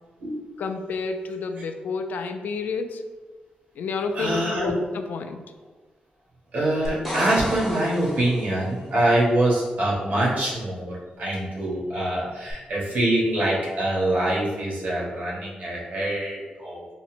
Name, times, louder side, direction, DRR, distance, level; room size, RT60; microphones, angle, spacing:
voice 1, 0.6-3.0 3.8-5.4, left 4 dB, 85° left, 7 dB, 0.3 m, -30 dB
voice 2, 4.1-4.7 6.5-16.9, right 1 dB, 60° right, -5 dB, 1.3 m, -24 dB
sound 1, 6.9-8.8 12.5-12.6, equal, ahead, 0.8 m, -33 dB
3.8 x 2.0 x 4.3 m, 1.3 s
wide cardioid pair, 125°, 3 cm